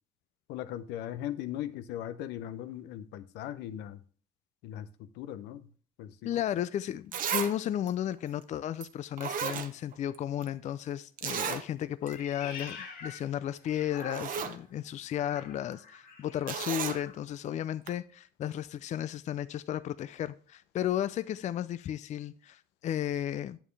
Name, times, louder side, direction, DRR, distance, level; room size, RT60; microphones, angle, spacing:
voice 1, 0.5-4.0 4.6-5.7 6.0-6.3, left 11 dB, 90° left, 0.7 m, -39 dB
voice 2, 6.2-23.6, left 11 dB, 45° left, 0.4 m, -34 dB
Zipper (clothing), 6.6-6.7 7.1-7.5 7.9-8.0 8.8-8.9 9.2-10.2 10.4-10.5 11.2-11.6 12.1-12.2 12.5-12.7 13.6-13.7 14.0-14.6 16.5-17.0 17.9-18.0, right 8 dB, 55° right, 0.8 m, -34 dB
Meow, 12.0-14.6 15.1-17.2, left 5 dB, 65° left, 2.0 m, -46 dB
8.9 x 7.2 x 3.3 m
cardioid pair, 110°, 17 cm